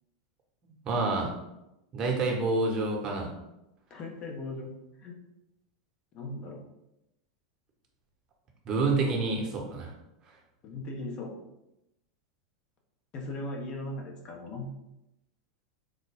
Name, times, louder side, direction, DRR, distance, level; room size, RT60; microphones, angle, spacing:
voice 1, 0.6-1.3 1.9-3.3 8.6-9.9, right 3 dB, 35° right, 0 dB, 0.9 m, -28 dB
voice 2, 3.9-4.7 5.0-5.2 6.1-6.6 9.0-9.1 10.6-11.3 13.1-14.7, left 2 dB, 40° left, 1 dB, 0.8 m, -38 dB
3.8 x 2.2 x 3.3 m, 0.89 s
hypercardioid pair, 95°, 2 cm